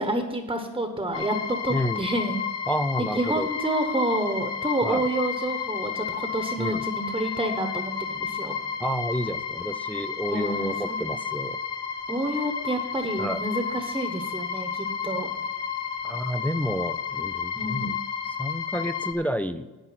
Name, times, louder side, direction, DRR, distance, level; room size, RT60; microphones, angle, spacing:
voice 1, 0.0-2.4 3.1-8.5 10.3-11.0 12.1-15.3 17.5-17.9, right 1 dB, 10° right, 5 dB, 1.1 m, -29 dB
sound 1, 1.1-19.1, left 7 dB, 75° left, 1.7 m, -32 dB
voice 2, 1.7-2.1 2.7-3.5 4.8-5.0 6.6-6.8 8.8-11.6 13.2-13.4 16.0-18.0 18.2-19.7, equal, 5° left, 10 dB, 0.3 m, -30 dB
10.5 x 8.6 x 5.8 m, 1.1 s
cardioid pair, 115°, 41 cm